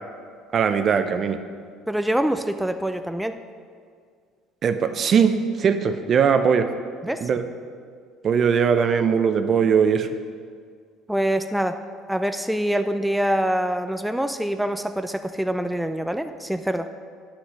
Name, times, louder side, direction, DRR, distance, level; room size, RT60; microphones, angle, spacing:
voice 1, 0.5-1.4 4.6-6.7 7.2-7.4 8.2-10.1, right 6 dB, 50° right, 9 dB, 0.6 m, -20 dB
voice 2, 1.9-3.4 7.0-7.3 11.1-11.7 12.1-16.9, right 1 dB, 5° right, 8 dB, 0.4 m, -25 dB
9.9 x 6.1 x 5.1 m, 2.1 s
hypercardioid pair, 75°, 0 cm